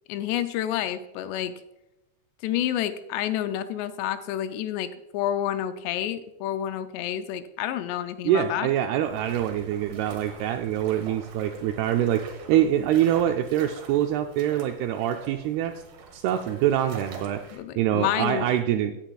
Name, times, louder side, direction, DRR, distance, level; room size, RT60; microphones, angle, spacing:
voice 1, 0.1-1.5 2.4-8.7 17.5-18.5, left 11 dB, 85° left, 10 dB, 2.6 m, -29 dB
voice 2, 8.2-15.8 16.1-19.0, right 11 dB, 85° right, 6 dB, 2.3 m, -25 dB
sound 1, 9.0-17.6, right 4 dB, 60° right, 2.6 m, -45 dB
16.5 x 8.9 x 2.3 m, 0.92 s
omnidirectional pair, 5.0 m